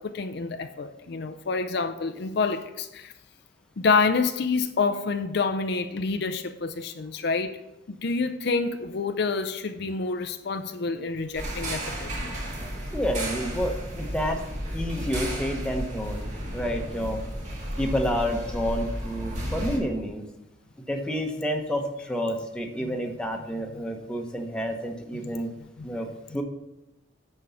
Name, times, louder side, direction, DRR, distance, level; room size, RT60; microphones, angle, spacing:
voice 1, 0.0-3.1 3.8-7.6 7.9-12.3 22.8-23.0 23.7-23.8 25.2-25.4 25.8-25.9, left 4 dB, 60° left, 0.5 m, -28 dB
sound 1, 11.3-19.8, equal, 40° right, 1.9 m, -33 dB
voice 2, 12.9-14.4 14.7-17.2 17.8-20.2 20.9-25.5 25.8-26.1 26.3-26.4, equal, 5° left, 1.0 m, -29 dB
9.6 x 4.6 x 7.0 m
head